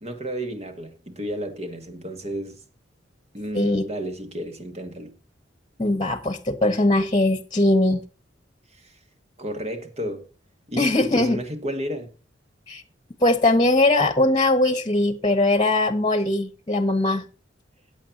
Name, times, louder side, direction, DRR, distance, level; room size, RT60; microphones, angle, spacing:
voice 1, 0.0-2.6 3.3-5.1 8.7-9.0 9.4-10.3 10.7-12.1, equal, 35° right, 2.0 m, -32 dB
voice 2, 5.8-8.0 10.8-11.4 12.7-12.8 13.2-17.2, left 2 dB, 25° left, 1.3 m, -20 dB
15.5 x 8.9 x 2.9 m
head